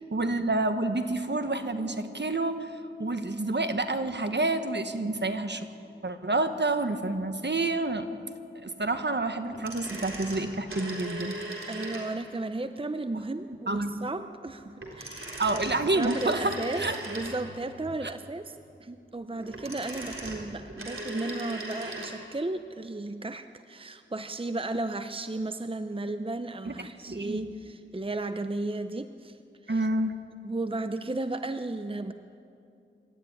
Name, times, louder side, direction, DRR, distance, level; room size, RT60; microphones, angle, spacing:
voice 1, 0.1-2.7 3.0-5.7 6.0-8.1 8.5-11.4 13.7-14.1 15.4-17.0 26.6-26.7 27.1-27.5 29.7-30.2, right 2 dB, 60° right, 8 dB, 1.4 m, -28 dB
sound 1, 9.5-12.4 14.8-17.7 19.3-22.2 22.4-22.5, right 1 dB, 90° right, 3.8 m, -38 dB
voice 2, 11.7-15.6 15.9-29.4 29.6-29.9 30.4-32.1, right 2 dB, 25° right, 9 dB, 0.7 m, -34 dB
25.5 x 13.0 x 9.8 m, 2.6 s
wide cardioid pair, 60°, 21 cm